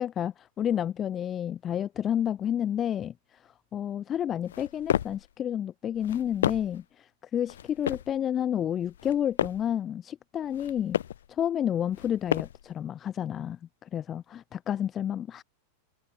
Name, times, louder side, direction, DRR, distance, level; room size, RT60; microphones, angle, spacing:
voice 1, 0.0-11.0 11.3-15.4, left 10 dB, 25° left, 2.8 m, -30 dB
sound 1, 4.4-5.3 5.9-6.8 7.5-8.2 8.9-9.7 10.4-11.3 11.9-12.7, left 10 dB, 60° left, 5.2 m, -32 dB
figure-of-eight pair, 90°, 0 cm